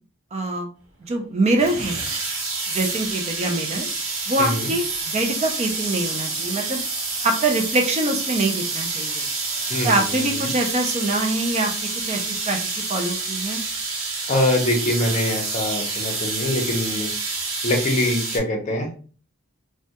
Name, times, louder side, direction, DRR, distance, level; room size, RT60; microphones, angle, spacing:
voice 1, 0.3-0.7 1.1-2.0 2.7-3.9 4.3-6.8 7.2-9.2 9.8-11.7 12.0-13.6, right 2 dB, 30° right, 4 dB, 0.3 m, -24 dB
sound 1, 1.6-18.4, right 3 dB, 80° right, 0.8 m, -28 dB
voice 2, 4.4-4.7 9.7-10.5 14.3-17.1 17.6-18.9, left 1 dB, 35° left, 2 dB, 0.6 m, -24 dB
2.2 x 2.1 x 2.8 m, 0.40 s
head